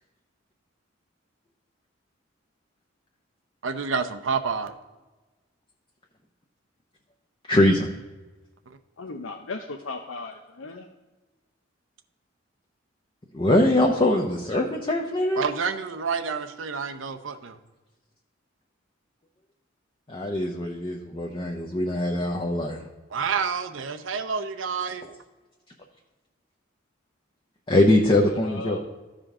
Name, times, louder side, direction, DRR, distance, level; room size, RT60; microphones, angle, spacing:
voice 1, 3.6-4.7 15.4-17.5 23.1-25.0, right 5 dB, 75° right, 8 dB, 0.7 m, -28 dB
voice 2, 7.5-7.9 13.3-15.5 20.1-22.8 27.7-28.9, left 1 dB, 25° left, 0 dB, 0.7 m, -22 dB
voice 3, 9.0-10.9 28.2-28.8, left 3 dB, 85° left, 4 dB, 0.6 m, -37 dB
14.0 x 5.1 x 3.7 m, 1.2 s
head